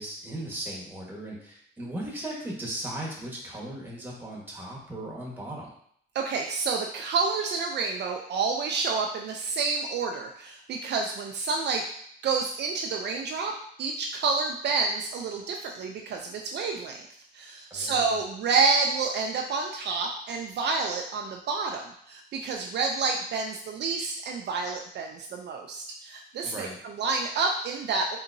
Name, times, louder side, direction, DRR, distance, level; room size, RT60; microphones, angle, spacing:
voice 1, 0.0-5.7 17.7-18.1 26.4-26.8, right 1 dB, 10° right, -3 dB, 1.2 m, -37 dB
voice 2, 6.1-11.8 12.2-13.5 13.8-17.1 17.3-28.2, right 4 dB, 60° right, 2 dB, 0.4 m, -29 dB
3.7 x 2.8 x 2.5 m, 0.66 s
cardioid pair, 90°, 20 cm